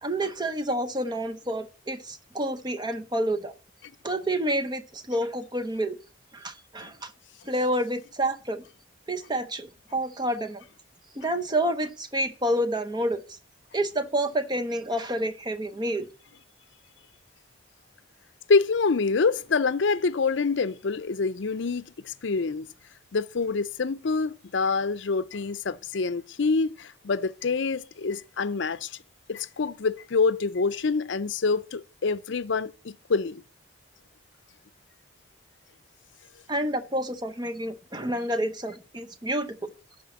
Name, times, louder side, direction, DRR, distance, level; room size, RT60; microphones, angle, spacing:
voice 1, 0.0-3.5 4.0-6.0 6.3-7.1 7.5-8.6 9.1-10.6 11.2-13.2 13.7-16.0 36.5-39.7, right 1 dB, 20° right, 0.7 m, -29 dB
voice 2, 18.5-22.7 23.1-29.0 29.3-33.4, left 4 dB, 70° left, 0.5 m, -26 dB
11.5 x 4.3 x 7.2 m
head